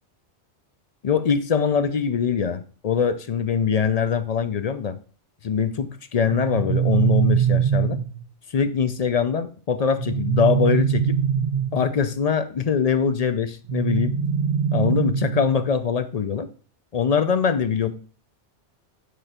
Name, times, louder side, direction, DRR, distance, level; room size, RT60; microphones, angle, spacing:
voice 1, 1.0-5.0 5.4-8.0 8.5-11.2 11.7-14.2 14.7-16.5 16.9-18.0, left 6 dB, 45° left, 0.5 m, -23 dB
sound 1, 6.3-8.2 10.0-11.9 13.7-15.6, right 8 dB, 45° right, 1.4 m, -22 dB
8.7 x 3.7 x 4.3 m
omnidirectional pair, 1.2 m